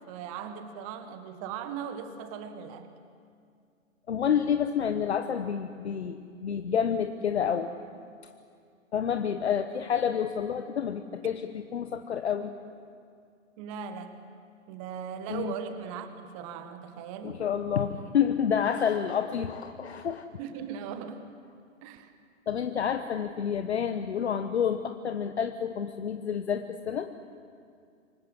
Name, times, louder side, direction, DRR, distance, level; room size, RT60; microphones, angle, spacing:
voice 1, 0.0-2.9 13.6-14.2 14.7-17.4 20.4-21.2 21.8-22.2, right 7 dB, 25° right, 9 dB, 1.7 m, -39 dB
voice 2, 4.1-7.7 8.9-12.5 15.3-15.5 17.2-20.3 22.5-27.1, left 8 dB, 55° left, 8 dB, 1.3 m, -29 dB
27.0 x 24.5 x 7.6 m, 2.3 s
figure-of-eight pair, 125°, 40 cm